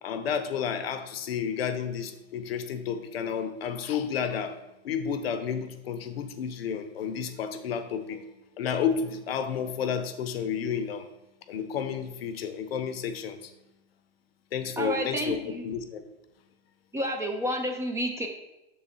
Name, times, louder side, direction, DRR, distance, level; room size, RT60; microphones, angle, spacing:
voice 1, 0.0-4.6 4.8-8.3 8.6-11.1 11.5-13.5 14.5-16.0, left 7 dB, 70° left, 9 dB, 0.8 m, -31 dB
voice 2, 14.8-15.7 16.9-18.3, equal, 10° right, 3 dB, 0.5 m, -30 dB
6.9 x 4.0 x 4.2 m, 0.95 s
hypercardioid pair, 120°, 32 cm